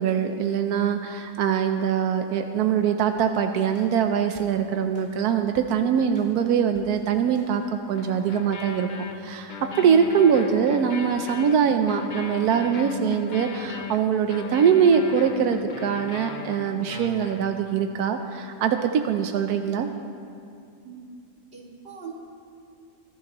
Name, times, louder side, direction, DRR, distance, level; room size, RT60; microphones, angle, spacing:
voice 1, 0.0-19.9, right 7 dB, 90° right, 6 dB, 1.2 m, -23 dB
sound 1, 3.2-3.3 3.7-4.0 4.4-4.5 4.9-5.2 5.6-5.7 6.1-6.4 6.8-7.6 7.9-17.8, left 6 dB, 45° left, 0.7 m, -38 dB
voice 2, 21.5-22.1, right 6 dB, 40° right, -4 dB, 2.7 m, -41 dB
25.5 x 13.5 x 3.0 m, 2.4 s
omnidirectional pair, 1.6 m